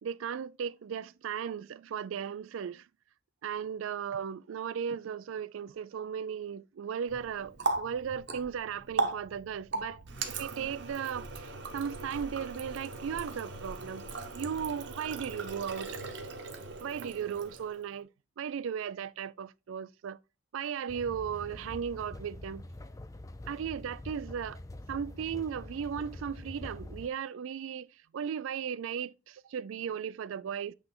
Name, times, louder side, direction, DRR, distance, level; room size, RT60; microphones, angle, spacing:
voice 1, 0.0-2.9 3.4-14.0 14.3-15.9 16.8-18.1 18.4-20.2 20.5-22.6 23.5-24.6 24.9-27.9 28.1-30.7, right 7 dB, 80° right, 0.3 m, -36 dB
Water tap faucet, 7.1-17.9, right 3 dB, 60° right, 1.0 m, -38 dB
sound 1, 20.9-27.1, left 1 dB, 15° left, 0.4 m, -45 dB
8.1 x 3.3 x 3.7 m
head